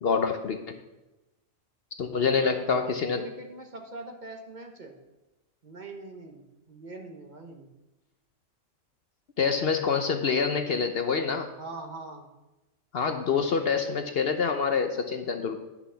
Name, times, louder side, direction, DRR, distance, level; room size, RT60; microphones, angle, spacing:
voice 1, 0.0-0.6 2.0-3.2 9.4-11.5 12.9-15.6, left 5 dB, 55° left, 7 dB, 0.8 m, -26 dB
voice 2, 2.0-4.9 5.6-6.4 6.7-7.7 11.6-12.3, right 3 dB, 40° right, 3 dB, 1.1 m, -42 dB
10.0 x 6.0 x 5.6 m, 1.0 s
omnidirectional pair, 1.3 m